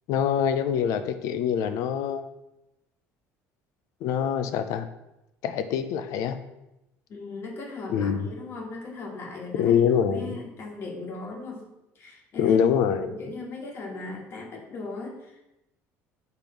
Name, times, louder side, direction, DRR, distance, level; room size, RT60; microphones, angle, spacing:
voice 1, 0.1-2.3 4.0-4.9 5.4-6.4 7.9-8.3 9.6-10.3 12.4-13.1, left 8 dB, 65° left, 10 dB, 0.6 m, -24 dB
voice 2, 7.1-9.8 10.1-11.6 12.0-12.6 13.0-15.5, left 3 dB, 40° left, 1 dB, 1.7 m, -38 dB
8.1 x 3.5 x 5.9 m, 0.90 s
cardioid pair, 145°, 6 cm